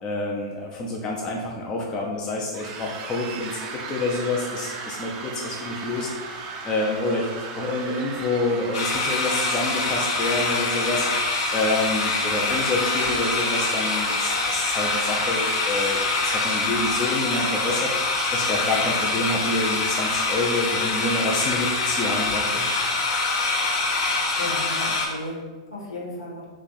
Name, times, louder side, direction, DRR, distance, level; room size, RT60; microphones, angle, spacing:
voice 1, 0.0-17.9 18.3-22.6, left 2 dB, 25° left, -2 dB, 0.5 m, -28 dB
sound 1, 2.5-18.8, right 4 dB, 35° right, 0.5 m, -37 dB
sound 2, 8.7-25.1, left 3 dB, 55° left, 0.9 m, -25 dB
voice 2, 24.0-26.5, left 2 dB, 75° left, -4 dB, 1.2 m, -35 dB
3.0 x 2.5 x 3.9 m, 1.3 s
figure-of-eight pair, 100°, 3 cm